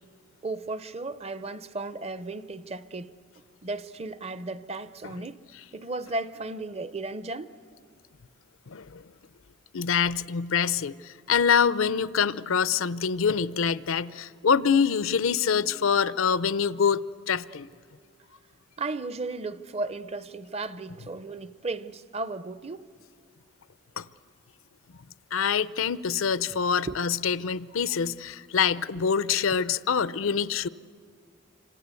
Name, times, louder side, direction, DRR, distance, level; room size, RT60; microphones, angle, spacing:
voice 1, 0.4-3.1 3.6-5.4 5.7-7.5 18.8-22.9 26.9-27.0, right 3 dB, 30° right, 0.6 m, -35 dB
voice 2, 8.7-9.0 9.7-17.7 24.0-24.1 25.3-30.7, left 6 dB, 80° left, 0.6 m, -25 dB
27.0 x 26.0 x 8.3 m
head